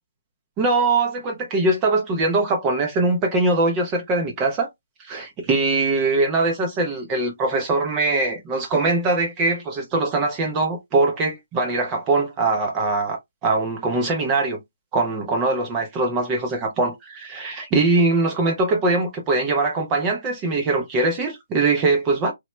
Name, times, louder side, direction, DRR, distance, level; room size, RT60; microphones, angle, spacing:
voice 1, 0.6-4.7 5.0-14.6 14.9-22.3, right 3 dB, 20° right, 0.5 m, -22 dB
3.1 x 2.1 x 3.0 m
hypercardioid pair, 165°, 0 cm